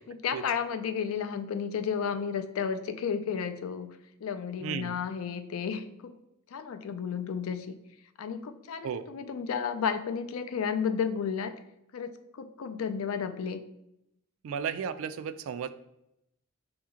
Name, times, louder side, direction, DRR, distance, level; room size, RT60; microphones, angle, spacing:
voice 1, 0.1-3.9 4.2-6.2 6.5-7.8 8.2-11.5 11.9-13.6, left 6 dB, 90° left, 10 dB, 0.4 m, -32 dB
voice 2, 4.6-4.9 8.8-9.1 14.4-15.7, right 7 dB, 75° right, 12 dB, 0.3 m, -34 dB
5.0 x 2.9 x 3.6 m, 0.82 s
head